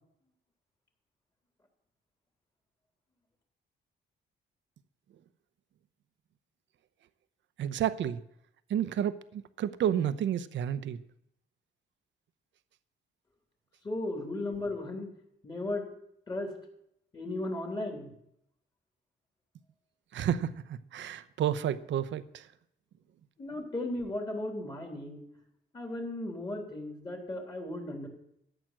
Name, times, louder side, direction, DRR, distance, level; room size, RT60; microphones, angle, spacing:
voice 1, 7.6-8.2 8.7-11.0 20.1-22.5, right 10 dB, 70° right, 0.8 m, -31 dB
voice 2, 13.8-15.1 15.4-15.9 16.3-16.5 17.1-18.1 23.4-25.2 25.7-28.1, left 2 dB, 20° left, 3.3 m, -35 dB
14.0 x 9.1 x 7.5 m
cardioid pair, 135°, 20 cm